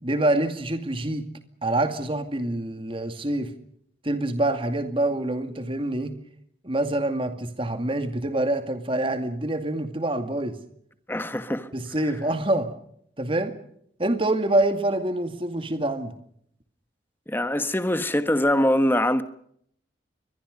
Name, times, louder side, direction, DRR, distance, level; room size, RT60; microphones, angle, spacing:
voice 1, 0.0-1.3 1.6-3.5 4.0-6.2 6.6-10.6 11.7-12.7 13.2-13.6 14.0-16.1, right 1 dB, 30° right, 2.3 m, -26 dB
voice 2, 11.1-11.7 17.3-19.2, left 1 dB, 10° left, 1.3 m, -23 dB
28.5 x 22.5 x 5.3 m
head